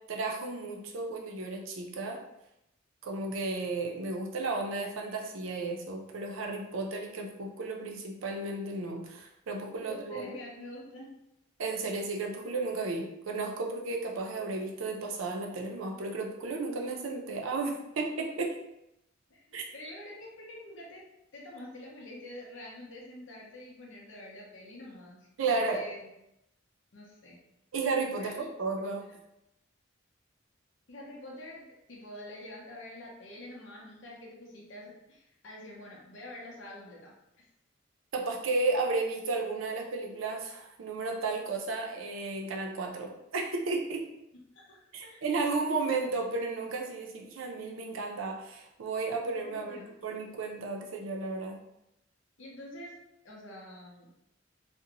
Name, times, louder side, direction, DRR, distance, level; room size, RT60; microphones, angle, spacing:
voice 1, 0.1-2.2 3.0-10.3 11.6-18.5 19.5-19.7 25.4-25.8 27.7-29.0 38.1-44.0 44.9-51.6, right 3 dB, 90° right, 2 dB, 0.5 m, -33 dB
voice 2, 9.9-11.1 19.3-21.0 21.3-26.1 26.9-27.4 28.2-28.4 28.8-29.2 30.9-37.4 44.3-45.3 49.2-49.9 52.4-53.0 53.2-54.1, left 1 dB, 70° left, -3 dB, 0.6 m, -47 dB
2.5 x 2.1 x 2.8 m, 0.85 s
head